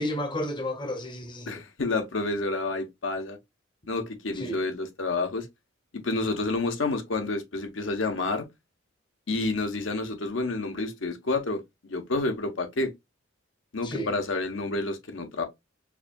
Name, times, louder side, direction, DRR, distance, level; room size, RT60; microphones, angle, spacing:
voice 1, 0.0-1.6 4.3-4.6 13.8-14.1, left 1 dB, 25° left, 0.8 m, -32 dB
voice 2, 1.5-3.4 3.9-5.5 5.9-8.5 9.3-12.9 13.7-15.4, left 3 dB, 75° left, 0.9 m, -29 dB
4.7 x 2.6 x 2.3 m
head